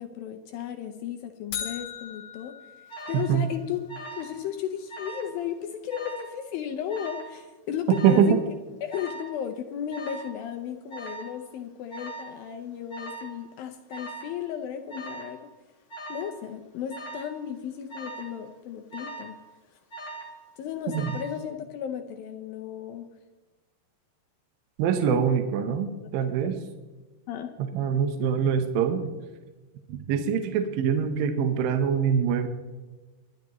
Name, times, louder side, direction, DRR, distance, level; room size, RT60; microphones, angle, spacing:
voice 1, 0.0-2.6 3.1-3.8 4.1-8.4 8.8-15.5 16.1-19.4 20.6-23.1 25.1-25.2 26.4-26.5 27.3-27.5, left 9 dB, 80° left, 5 dB, 2.2 m, -34 dB
sound 1, 1.5-3.6, left 9 dB, 60° left, 1.7 m, -38 dB
Alarm, 2.9-3.3 3.9-4.4 4.6-5.3 5.9-6.3 6.9-7.3 7.9-8.3 8.9-9.3 9.9-10.3 10.9-11.3 11.9-12.3 12.9-13.3 13.9-14.4 14.9-15.3 15.9-16.3 16.9-17.3 17.9-18.3 18.9-19.4 19.9-20.4 20.9-21.4, right 2 dB, 30° left, 1.3 m, -40 dB
voice 2, 3.1-3.5 8.0-8.4 20.9-21.2 24.8-26.6 27.7-29.1 29.9-32.5, right 7 dB, 75° right, 6 dB, 2.4 m, -24 dB
24.0 x 10.5 x 3.0 m, 1.2 s
omnidirectional pair, 4.7 m